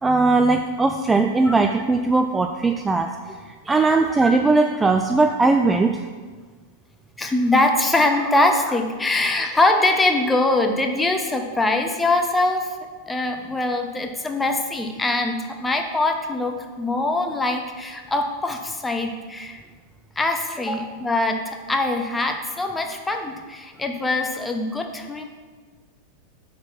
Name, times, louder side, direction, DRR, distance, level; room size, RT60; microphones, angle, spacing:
voice 1, 0.0-3.1 3.5-6.1 13.5-13.6, right 3 dB, 10° right, 5 dB, 0.3 m, -19 dB
voice 2, 7.2-12.8 13.1-19.6 20.2-25.2, left 2 dB, 10° left, 4 dB, 0.7 m, -23 dB
5.8 x 4.4 x 5.8 m, 1.5 s
figure-of-eight pair, 90°, 0 cm